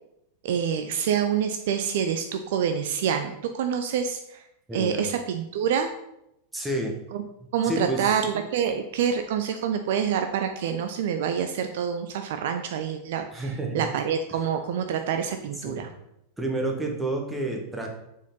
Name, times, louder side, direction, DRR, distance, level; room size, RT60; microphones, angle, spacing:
voice 1, 0.4-4.4 4.7-5.9 7.1-7.2 7.5-13.5 13.7-15.9, right 8 dB, 55° right, 7 dB, 0.5 m, -27 dB
voice 2, 4.7-5.1 6.5-6.9 7.6-8.2 13.3-13.8 14.3-14.4 15.6-15.8 16.4-17.9, right 2 dB, 10° right, 1 dB, 1.3 m, -29 dB
7.0 x 4.5 x 3.8 m, 0.82 s
figure-of-eight pair, 90°, 0 cm